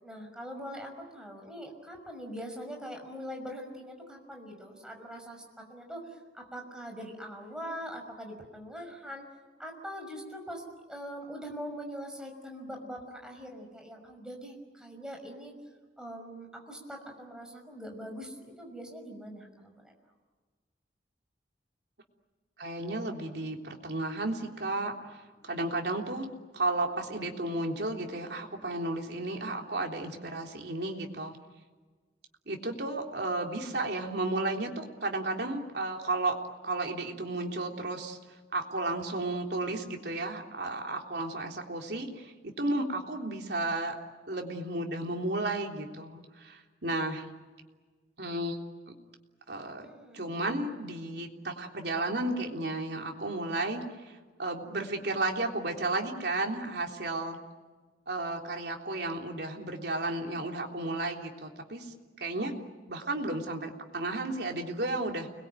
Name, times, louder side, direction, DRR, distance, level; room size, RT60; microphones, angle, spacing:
voice 1, 0.0-5.4 5.7-6.0 6.3-9.2 9.6-15.5 16.0-19.8 49.8-50.2, equal, 5° right, 2 dB, 5.9 m, -42 dB
voice 2, 22.6-24.9 25.4-26.3 26.5-31.4 32.5-38.2 38.5-44.0 44.3-47.3 48.2-48.6 49.5-49.9 50.1-57.4 58.1-61.9 62.2-62.5 62.9-65.3, right 2 dB, 70° right, 2 dB, 3.5 m, -33 dB
30.0 x 22.0 x 9.1 m, 1.4 s
head